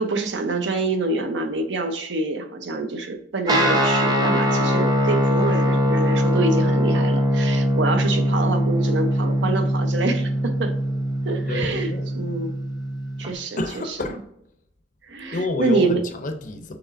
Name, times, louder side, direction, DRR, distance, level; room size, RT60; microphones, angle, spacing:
voice 1, 0.0-10.8 11.2-12.6 13.2-13.6 15.1-16.0, right 3 dB, 70° right, 0.7 m, -26 dB
Guitar, 3.5-13.3, equal, 25° right, 0.6 m, -22 dB
voice 2, 11.4-12.1 13.6-14.2 15.3-16.8, left 2 dB, 45° left, 0.5 m, -29 dB
6.5 x 3.0 x 2.5 m
head